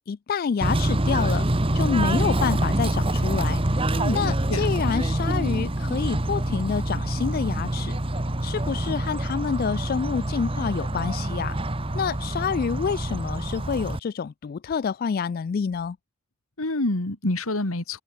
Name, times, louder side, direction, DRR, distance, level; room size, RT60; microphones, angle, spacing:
voice 1, 0.0-1.5 1.7-3.6 4.1-8.0 8.4-11.6 11.9-16.0, left 6 dB, 45° left, 0.3 m, -28 dB
Bird / Train, 0.6-14.0, right 1 dB, 25° right, 1.4 m, -26 dB
voice 2, 3.9-4.7 16.6-18.0, left 2 dB, 80° left, 2.1 m, -27 dB
head